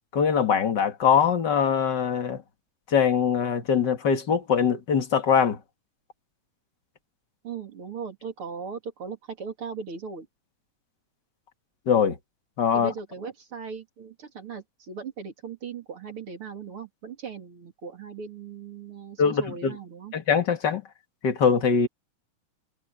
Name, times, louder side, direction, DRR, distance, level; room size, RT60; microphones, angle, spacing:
voice 1, 0.1-2.4 2.9-5.6 11.9-12.2 12.6-12.9 19.2-19.7 20.1-20.8 21.2-21.9, left 7 dB, 40° left, 2.0 m, -22 dB
voice 2, 7.4-10.3 12.7-20.1, right 5 dB, 45° right, 3.4 m, -38 dB
omnidirectional pair, 3.7 m